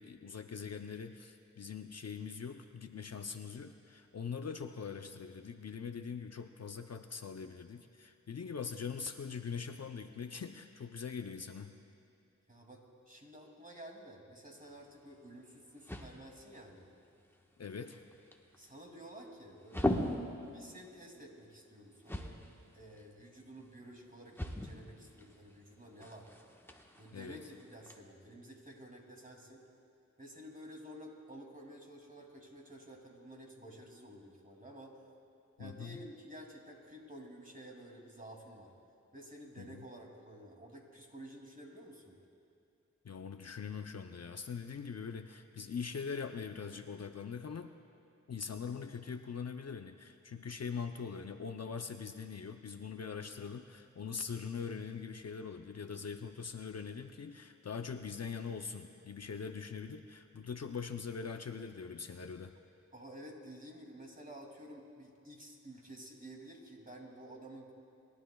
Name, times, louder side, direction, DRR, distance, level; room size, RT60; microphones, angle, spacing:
voice 1, 0.0-11.7 17.6-18.0 27.1-27.4 35.6-36.0 39.6-39.8 43.0-47.7 48.3-62.5, left 6 dB, 60° left, 7 dB, 0.6 m, -42 dB
voice 2, 12.5-16.9 18.6-20.0 20.5-22.4 22.7-26.3 27.0-27.4 27.7-29.6 30.2-35.0 35.6-38.7 39.1-42.2 62.9-67.7, right 1 dB, 30° right, 0 dB, 2.5 m, -52 dB
sound 1, 14.6-28.0, left 1 dB, 10° left, 1.2 m, -42 dB
29.0 x 12.0 x 2.3 m, 2.6 s
cardioid pair, 40°, 30 cm